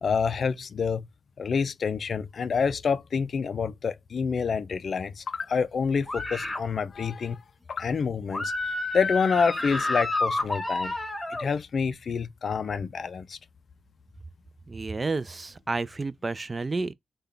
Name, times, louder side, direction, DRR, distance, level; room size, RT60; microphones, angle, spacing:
voice 1, 0.0-1.1 1.4-7.4 7.7-10.9 11.3-13.4, left 5 dB, 65° left, 0.3 m, -28 dB
sound 1, 6.1-6.6 8.3-11.5, left 2 dB, 20° left, 1.1 m, -29 dB
voice 2, 14.7-16.9, right 3 dB, 40° right, 0.4 m, -30 dB
3.6 x 2.2 x 3.3 m
supercardioid pair, 50°, 0 cm